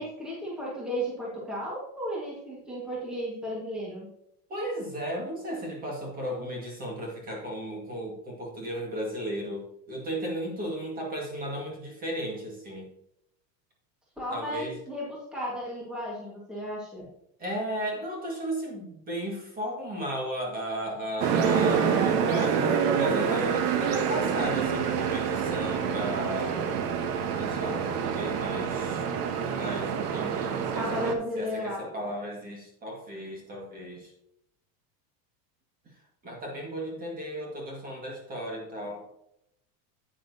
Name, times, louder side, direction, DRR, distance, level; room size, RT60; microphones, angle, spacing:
voice 1, 0.0-4.1 14.2-17.1 30.7-32.0, equal, ahead, -6 dB, 1.5 m, -34 dB
voice 2, 4.5-12.9 14.3-14.7 17.4-26.6 27.4-29.1 29.4-34.1 36.2-39.1, equal, 20° right, -1 dB, 1.7 m, -35 dB
sound 1, 21.2-31.1, right 7 dB, 70° right, 1.3 m, -27 dB
8.9 x 8.7 x 2.7 m, 0.78 s
supercardioid pair, 170°, 49 cm